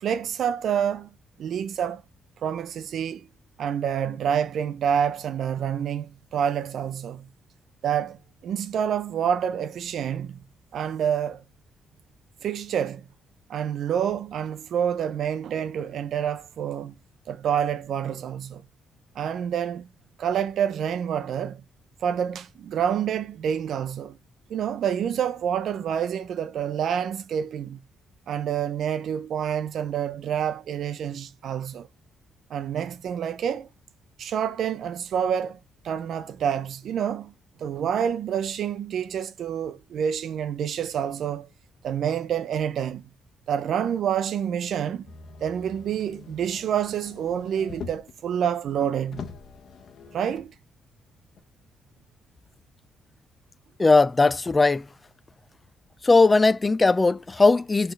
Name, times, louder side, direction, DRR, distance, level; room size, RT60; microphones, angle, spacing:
voice 1, 0.0-1.1 1.4-2.0 2.4-3.3 3.6-7.3 7.8-10.4 10.7-11.4 12.4-13.0 13.5-16.9 17.3-18.6 19.2-19.9 20.2-21.6 22.0-24.2 24.5-27.8 28.3-31.9 32.5-33.7 34.2-35.6 35.8-37.3 37.6-41.5 41.8-43.0 43.5-45.1 45.4-49.3 50.1-50.5, right 8 dB, 65° right, 0.6 m, -27 dB
Motor vehicle (road), 45.1-48.2 48.7-48.8 49.1-50.5 51.4-51.5, left 6 dB, 60° left, 1.2 m, -43 dB
voice 2, 53.8-54.9 56.0-57.9, left 3 dB, 20° left, 0.4 m, -19 dB
6.1 x 3.4 x 4.6 m
cardioid pair, 90°, 0 cm